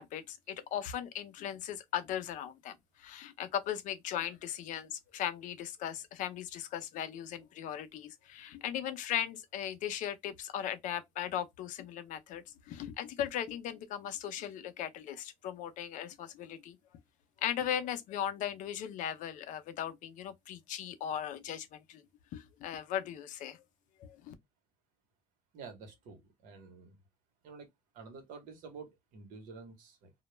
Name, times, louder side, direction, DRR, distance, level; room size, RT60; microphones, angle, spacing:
voice 1, 0.0-16.8 17.4-22.0 22.3-23.6 24.0-24.3, left 10 dB, 65° left, 0.5 m, -38 dB
voice 2, 25.5-27.0 27.4-27.7 27.9-30.1, right 4 dB, 75° right, 0.9 m, -49 dB
2.2 x 2.0 x 3.0 m
cardioid pair, 120°, 14 cm